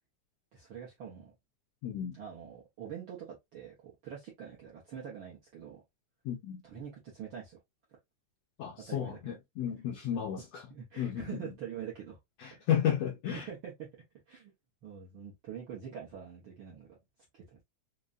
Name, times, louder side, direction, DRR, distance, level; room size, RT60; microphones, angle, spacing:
voice 1, 0.5-1.3 2.1-5.8 6.6-7.6 7.9-8.0 8.9-9.2 10.7-12.2 12.5-12.7 13.3-13.9 14.3-14.5 14.8-17.0 17.3-17.6, right 8 dB, 70° right, 1.2 m, -45 dB
voice 2, 1.8-2.2 6.2-6.6 8.6-10.6 11.0-11.4 12.4-13.5, left 9 dB, 80° left, 1.5 m, -33 dB
5.1 x 2.2 x 2.4 m
omnidirectional pair, 3.5 m